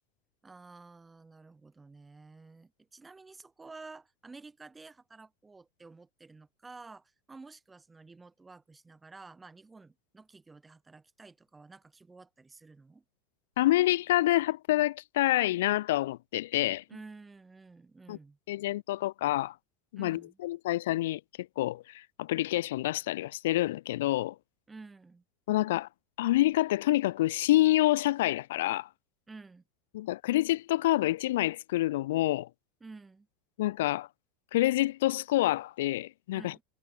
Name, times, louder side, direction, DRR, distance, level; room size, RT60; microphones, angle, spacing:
voice 1, 0.4-13.0 16.9-18.4 20.0-20.4 24.7-25.2 29.3-29.6 32.8-33.3 36.3-36.6, right 3 dB, 10° right, 2.5 m, -51 dB
voice 2, 13.6-16.8 18.1-18.2 18.5-19.5 19.9-21.2 21.6-24.3 25.5-25.9 26.2-28.9 29.9-32.5 33.6-34.1 34.5-36.5, left 16 dB, 85° left, 0.8 m, -27 dB
supercardioid pair, 175°, 0 cm